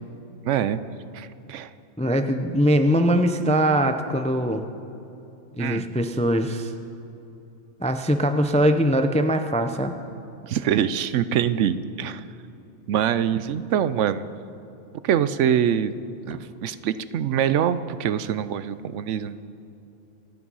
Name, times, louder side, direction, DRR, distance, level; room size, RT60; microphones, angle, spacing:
voice 1, 0.4-1.7 5.6-5.9 10.4-12.2 12.9-14.3 15.0-16.0 16.3-19.4, right 9 dB, 75° right, 14 dB, 0.9 m, -24 dB
voice 2, 2.0-4.7 5.6-6.7 7.8-10.0, equal, 10° left, 7 dB, 0.4 m, -22 dB
26.0 x 8.8 x 5.5 m, 2.8 s
omnidirectional pair, 1.3 m